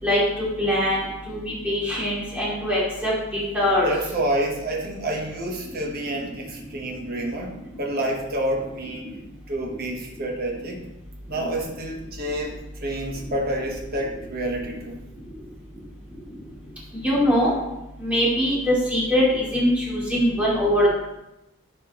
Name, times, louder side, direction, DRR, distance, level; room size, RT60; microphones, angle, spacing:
voice 1, 0.0-3.9 17.0-17.5 18.0-20.9, equal, 5° right, -7 dB, 2.5 m, -22 dB
voice 2, 3.5-9.0 9.5-10.8 11.3-14.9, right 1 dB, 45° right, 0 dB, 1.1 m, -28 dB
11.5 x 4.6 x 3.0 m, 0.93 s
head